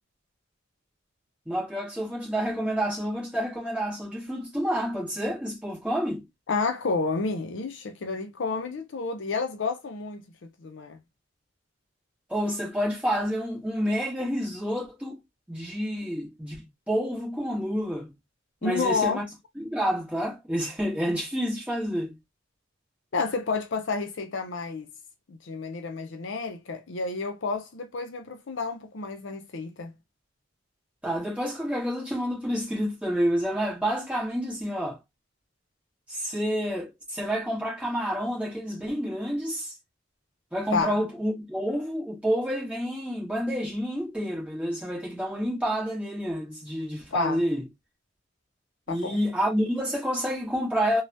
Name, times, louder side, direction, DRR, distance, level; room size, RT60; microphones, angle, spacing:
voice 1, 1.4-6.2 12.3-15.2 15.5-16.6 16.9-18.1 18.6-19.2 19.6-22.2 31.0-35.0 36.1-39.7 40.5-47.6 48.9-51.0, equal, 5° right, 1.5 m, -29 dB
voice 2, 6.5-11.0 18.6-19.2 23.1-24.9 25.3-29.9 40.7-41.0 47.1-47.4 48.9-49.2, left 4 dB, 65° left, 0.5 m, -30 dB
3.3 x 2.2 x 2.6 m
head